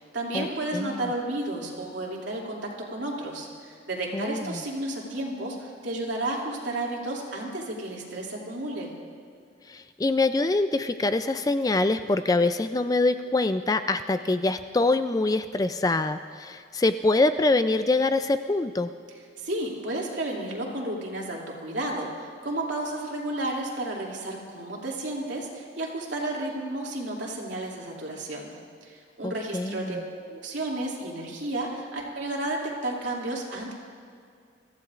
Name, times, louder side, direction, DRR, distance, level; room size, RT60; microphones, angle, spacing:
voice 1, 0.0-8.9 19.4-28.5 28.8-30.0 30.3-33.7, right 1 dB, 70° right, -2 dB, 2.6 m, -32 dB
voice 2, 0.7-1.1 4.1-4.6 9.7-18.9 29.2-30.0, left 2 dB, 20° left, 10 dB, 0.3 m, -25 dB
24.0 x 15.0 x 2.5 m, 2.3 s
head